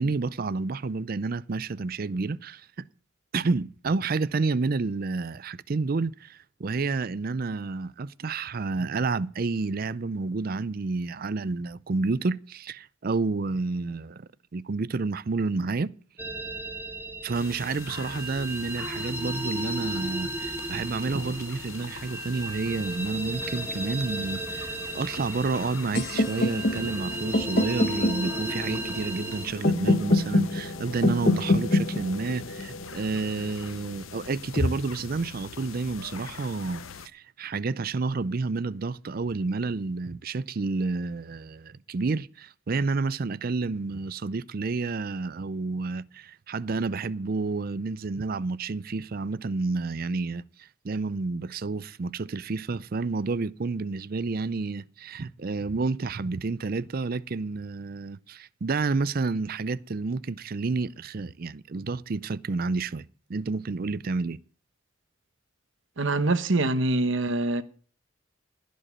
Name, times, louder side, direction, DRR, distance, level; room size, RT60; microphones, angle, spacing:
voice 1, 0.0-2.9 3.3-15.9 17.2-36.8 37.1-50.4 50.8-64.4, right 3 dB, 45° right, 0.5 m, -30 dB
sound 1, 16.2-29.5, right 2 dB, 10° right, 1.0 m, -35 dB
sound 2, 17.3-37.1, left 3 dB, 85° left, 0.9 m, -41 dB
sound 3, 25.9-33.9, left 1 dB, 50° left, 1.2 m, -26 dB
voice 2, 66.0-67.6, right 2 dB, 65° right, 1.1 m, -24 dB
15.0 x 5.3 x 8.7 m
head